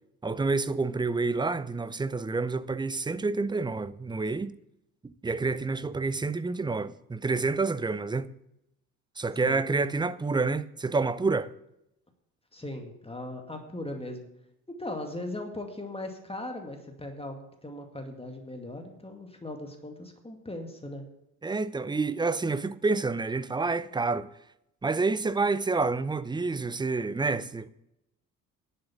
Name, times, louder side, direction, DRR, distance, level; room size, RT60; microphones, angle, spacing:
voice 1, 0.2-4.5 5.0-8.3 9.2-11.5 21.4-24.3 24.8-27.7, right 3 dB, 10° right, 0.6 m, -28 dB
voice 2, 12.5-14.3 14.7-21.0, left 1 dB, 15° left, 2.2 m, -39 dB
11.5 x 7.8 x 7.2 m
figure-of-eight pair, 45°, 44 cm